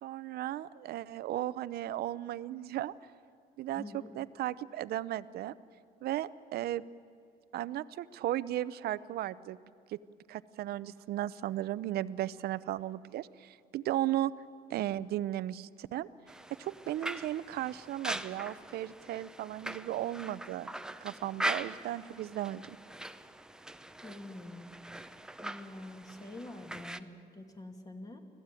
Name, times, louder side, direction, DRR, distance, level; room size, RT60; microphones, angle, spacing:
voice 1, 0.0-2.9 3.6-3.8 4.1-5.5 6.0-6.8 7.5-9.6 9.9-10.0 10.3-14.3 14.7-16.1 16.6-20.7 21.0-22.6, right 13 dB, 70° right, 17 dB, 0.7 m, -35 dB
voice 2, 3.7-4.1 24.0-24.7 25.4-28.2, left 2 dB, 20° left, 4 dB, 2.6 m, -46 dB
sound 1, 16.3-27.0, right 1 dB, 5° right, 0.7 m, -41 dB
25.0 x 17.0 x 9.0 m, 2.2 s
cardioid pair, 110°, 17 cm